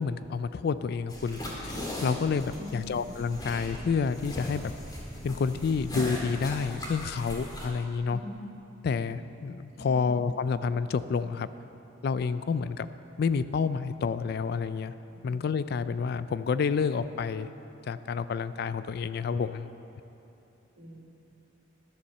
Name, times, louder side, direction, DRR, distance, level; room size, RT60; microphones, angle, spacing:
voice 1, 0.0-1.7 2.0-4.7 5.2-8.2 8.8-11.5 12.0-12.9 13.2-14.9 15.2-17.5 17.9-19.7, left 5 dB, 55° left, 14 dB, 0.3 m, -29 dB
sound 1, 1.1-7.7, left 1 dB, 20° left, 2.0 m, -39 dB
voice 2, 2.6-3.0 8.1-8.4 9.8-10.1 15.1-15.3 20.8-21.0, left 2 dB, 80° right, -4 dB, 2.5 m, -43 dB
11.5 x 7.0 x 6.6 m, 2.9 s
head